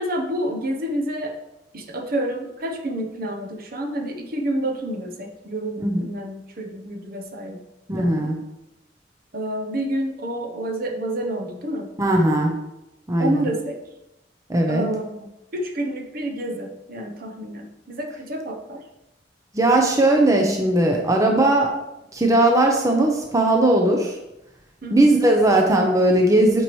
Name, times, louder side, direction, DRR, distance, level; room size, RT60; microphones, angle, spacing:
voice 1, 0.0-1.4 1.7-7.6 7.9-8.3 9.3-11.9 13.2-13.8 14.7-15.1 15.5-18.8 24.8-25.1, right 1 dB, 55° right, 3 dB, 0.8 m, -29 dB
voice 2, 7.9-8.4 12.0-12.5 13.1-13.5 14.5-14.9 19.5-21.7 22.1-24.2 24.9-26.6, right 1 dB, 20° right, 2 dB, 0.7 m, -18 dB
8.1 x 4.6 x 3.1 m, 0.91 s
head